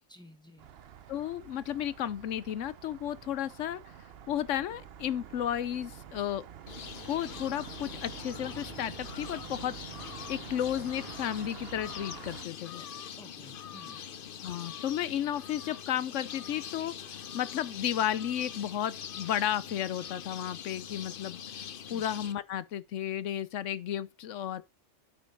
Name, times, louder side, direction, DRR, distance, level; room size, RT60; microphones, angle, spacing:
voice 1, 0.1-0.7 12.8-14.0 21.9-22.1, equal, 5° left, 1.3 m, -54 dB
sound 1, 0.6-12.4, right 9 dB, 60° right, 0.8 m, -47 dB
voice 2, 1.1-3.8 4.3-6.4 7.0-9.7 10.3-12.8 14.4-21.4 21.9-24.6, left 10 dB, 80° left, 1.0 m, -33 dB
sound 2, 6.7-22.3, left 8 dB, 55° left, 0.8 m, -43 dB
8.5 x 5.2 x 4.5 m
omnidirectional pair, 1.3 m